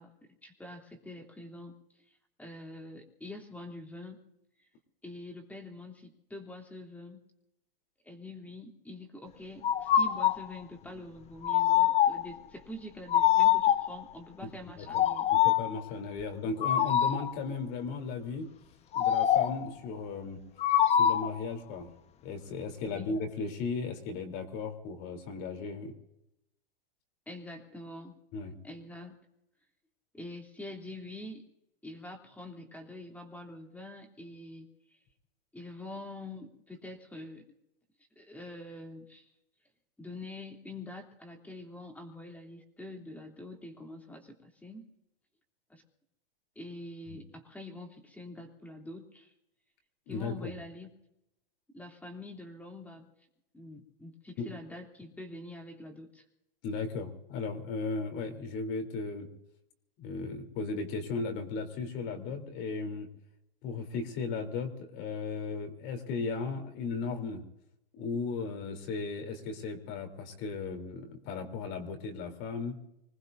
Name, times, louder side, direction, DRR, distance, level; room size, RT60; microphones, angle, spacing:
voice 1, 0.0-1.8 2.4-4.2 5.0-7.2 8.0-15.3 22.8-23.2 27.3-28.1 28.6-29.2 30.1-31.5 31.8-34.7 35.5-37.5 38.2-39.3 40.0-44.9 45.7-45.8 46.5-49.3 50.1-50.9 51.7-53.1 53.5-56.2, left 1 dB, 5° left, 3 dB, 3.0 m, -45 dB
sound 1, 9.6-10.5 11.4-12.3 13.1-14.0 14.9-15.7 16.6-17.3 18.9-19.7 20.6-21.4, left 11 dB, 20° left, 0.8 m, -24 dB
voice 2, 15.3-18.5 18.9-20.4 20.9-21.9 22.2-25.9 28.3-28.5 47.1-47.2 50.1-50.6 54.4-54.5 56.6-59.3 60.0-63.1 63.6-67.4 67.9-72.8, left 4 dB, 40° left, 5 dB, 3.5 m, -36 dB
26.0 x 19.0 x 2.7 m, 0.82 s
hypercardioid pair, 125°, 29 cm